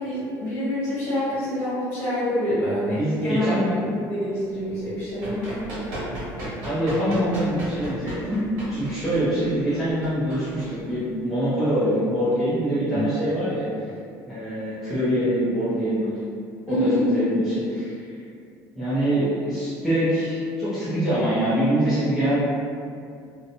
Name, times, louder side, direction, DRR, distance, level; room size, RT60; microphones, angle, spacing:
voice 1, 0.0-3.5 3.9-5.5 12.9-13.1 16.7-17.1, left 1 dB, 35° left, -12 dB, 1.3 m, -26 dB
voice 2, 3.0-3.8 6.1-6.2 6.6-13.7 14.2-16.1 16.7-18.1 18.8-22.4, equal, ahead, -15 dB, 0.5 m, -24 dB
Run, 5.0-11.3, right 1 dB, 75° right, 1.2 m, -35 dB
2.7 x 2.1 x 2.6 m, 2.3 s
cardioid pair, 175°, 8 cm